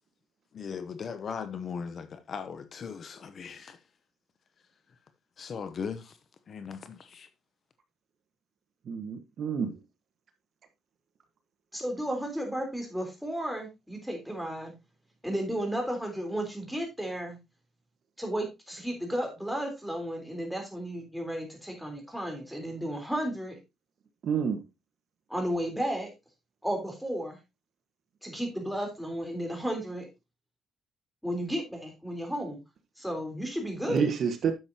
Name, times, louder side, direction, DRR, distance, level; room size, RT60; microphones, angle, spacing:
voice 1, 0.5-3.8 5.4-6.2 6.5-7.3, left 6 dB, 45° left, 0.8 m, -38 dB
voice 2, 8.8-9.8 24.2-24.6 33.9-34.5, right 6 dB, 55° right, 1.4 m, -28 dB
voice 3, 11.7-14.7 15.2-17.4 18.2-23.6 25.3-26.1 26.6-27.4 28.2-30.1 31.2-32.6 33.0-34.1, equal, ahead, 3.5 m, -33 dB
10.5 x 7.3 x 2.8 m
cardioid pair, 105°, 0 cm